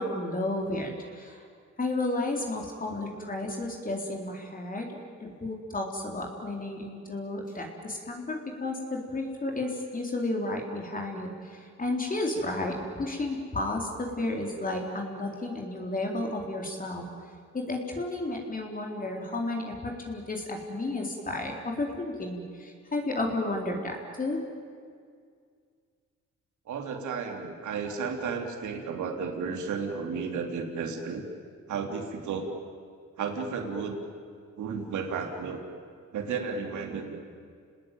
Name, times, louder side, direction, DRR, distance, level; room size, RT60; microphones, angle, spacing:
voice 1, 0.0-1.5 1.8-17.0 17.5-24.4, left 2 dB, 30° left, 1 dB, 4.1 m, -32 dB
voice 2, 26.7-31.2 31.7-32.5 33.2-34.0 34.6-35.6 36.1-37.2, right 5 dB, 75° right, 4 dB, 3.5 m, -33 dB
29.0 x 20.0 x 9.4 m, 2.2 s
cardioid pair, 90°, 30 cm